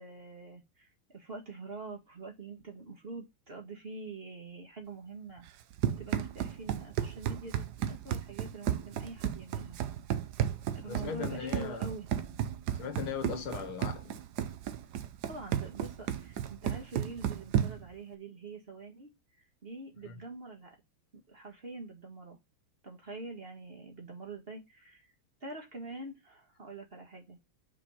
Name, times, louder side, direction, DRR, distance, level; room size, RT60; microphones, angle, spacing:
voice 1, 0.0-5.5 5.8-9.8 10.8-12.1 14.4-14.5 15.3-19.1 19.6-20.8 21.3-22.4 22.8-25.1 25.4-27.4, right 3 dB, 30° right, 1.7 m, -45 dB
Run, 5.5-17.9, right 10 dB, 65° right, 1.0 m, -34 dB
voice 2, 10.9-12.0 12.7-14.2 20.0-20.2, left 7 dB, 85° left, 2.0 m, -38 dB
5.4 x 5.2 x 5.7 m
omnidirectional pair, 2.3 m